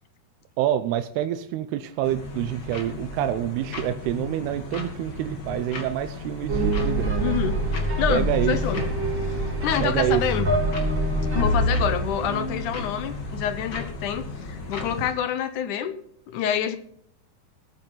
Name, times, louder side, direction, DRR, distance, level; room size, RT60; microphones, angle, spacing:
voice 1, 0.6-7.3 8.1-8.6 9.8-10.2 11.3-11.5, right 12 dB, 90° right, 10 dB, 2.8 m, -27 dB
sound 1, 2.0-15.1, left 3 dB, 35° left, 2.0 m, -36 dB
sound 2, 6.5-13.8, right 1 dB, 25° right, 4.6 m, -26 dB
voice 2, 7.2-7.6 8.0-8.8 9.6-10.5 11.4-16.0 16.3-16.8, left 9 dB, 70° left, 11 dB, 2.0 m, -27 dB
19.5 x 9.1 x 3.9 m, 0.68 s
omnidirectional pair, 4.5 m